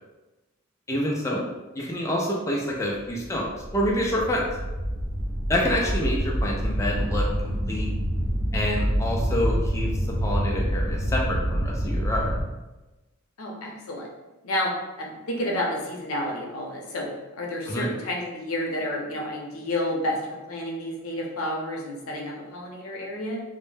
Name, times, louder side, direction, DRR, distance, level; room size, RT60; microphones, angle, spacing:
voice 1, 0.9-1.5 1.7-3.4 3.7-4.4 5.5-7.9 8.5-9.9 10.2-12.3 17.7-17.9, equal, 15° left, -3 dB, 0.3 m, -27 dB
sound 1, 3.2-12.4, equal, 75° right, 0.7 m, -27 dB
voice 2, 13.4-14.1 14.4-23.4, left 1 dB, 85° left, -1 dB, 0.6 m, -30 dB
2.1 x 2.0 x 3.1 m, 1.1 s
head